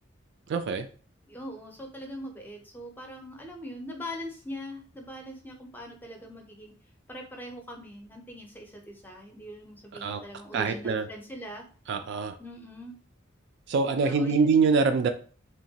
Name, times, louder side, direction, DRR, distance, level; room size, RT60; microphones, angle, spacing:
voice 1, 0.5-0.9 10.0-10.2 10.5-11.1 11.9-12.4 13.7-15.1, right 4 dB, 60° right, 8 dB, 0.3 m, -24 dB
voice 2, 1.3-6.8 7.1-11.6 12.4-12.9 14.0-14.8, equal, 10° left, 2 dB, 0.5 m, -42 dB
2.9 x 2.2 x 2.7 m, 0.41 s
head